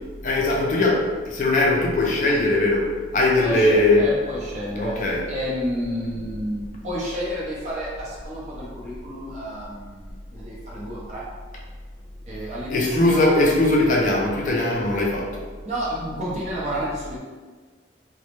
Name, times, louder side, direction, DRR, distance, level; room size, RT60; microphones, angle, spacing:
voice 1, 0.2-4.1 4.8-5.2 12.7-15.4, left 2 dB, 45° left, -2 dB, 0.4 m, -20 dB
voice 2, 3.4-11.3 12.3-13.4 15.6-17.2, equal, 40° right, -6 dB, 0.6 m, -30 dB
2.0 x 2.0 x 2.9 m, 1.4 s
head